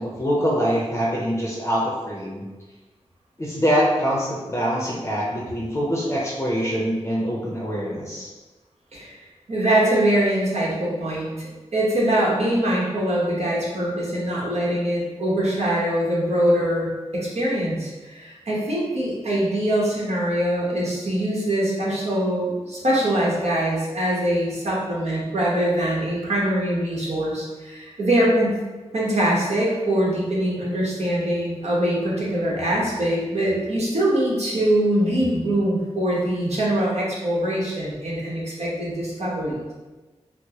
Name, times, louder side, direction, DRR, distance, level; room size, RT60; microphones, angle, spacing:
voice 1, 0.0-2.4 3.4-8.3, equal, 25° left, -4 dB, 0.6 m, -24 dB
voice 2, 9.5-28.6 28.9-39.7, right 1 dB, 70° right, -5 dB, 1.1 m, -23 dB
4.5 x 2.0 x 2.9 m, 1.2 s
wide cardioid pair, 115°, 11 cm